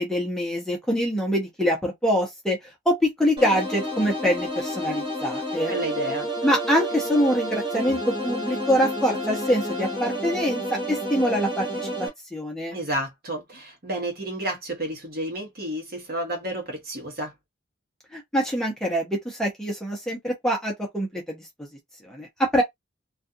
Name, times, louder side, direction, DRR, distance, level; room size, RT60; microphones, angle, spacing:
voice 1, 0.0-2.6 2.9-5.7 6.4-11.9 12.3-12.8 18.1-21.4 22.1-22.3 22.5-22.6, equal, 5° left, 0.7 m, -24 dB
sound 1, 3.4-12.1, equal, 25° right, 1.0 m, -30 dB
voice 2, 5.7-6.3 12.7-17.3, right 1 dB, 50° right, 1.1 m, -31 dB
2.4 x 2.4 x 2.6 m
head